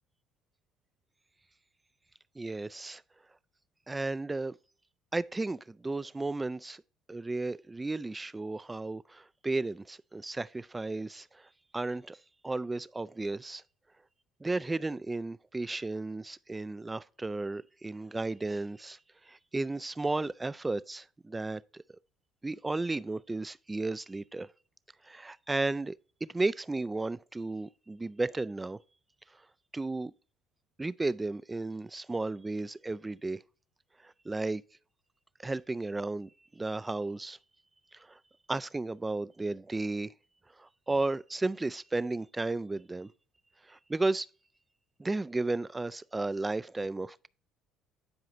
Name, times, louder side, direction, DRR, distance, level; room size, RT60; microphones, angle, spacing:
voice 1, 2.4-3.0 3.9-4.5 5.1-6.8 7.1-12.2 12.4-13.6 14.4-19.0 19.3-21.8 22.4-24.5 25.0-26.0 26.2-28.8 29.7-30.1 30.8-33.4 34.0-34.6 35.4-37.4 37.9-38.2 38.5-40.1 40.6-43.1 43.7-44.3 45.0-47.3, right 2 dB, 20° right, 0.3 m, -34 dB
10.5 x 4.8 x 2.6 m
hypercardioid pair, 65°, 0 cm